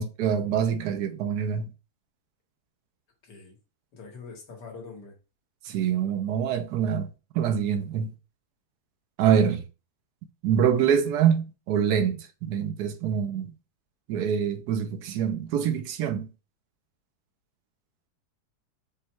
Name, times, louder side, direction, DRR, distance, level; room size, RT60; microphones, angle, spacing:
voice 1, 0.0-1.7 5.6-7.1 7.3-8.1 9.2-9.6 10.4-13.5 14.1-16.3, right 8 dB, 75° right, 1.1 m, -25 dB
voice 2, 3.2-3.6 3.9-5.1, left 4 dB, 80° left, 2.0 m, -43 dB
5.4 x 2.2 x 4.4 m
omnidirectional pair, 1.8 m